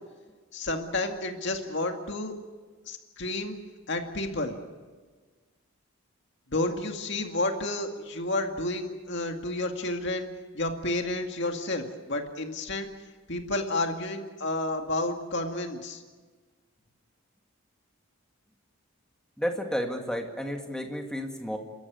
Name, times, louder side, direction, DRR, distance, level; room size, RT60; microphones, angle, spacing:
voice 1, 0.5-2.3 2.9-3.6 3.9-4.6 6.5-10.3 10.5-12.9 13.3-16.0, left 2 dB, 50° left, 4 dB, 2.2 m, -31 dB
voice 2, 19.4-21.6, equal, 5° left, 3 dB, 2.0 m, -31 dB
29.0 x 13.5 x 9.5 m, 1.4 s
head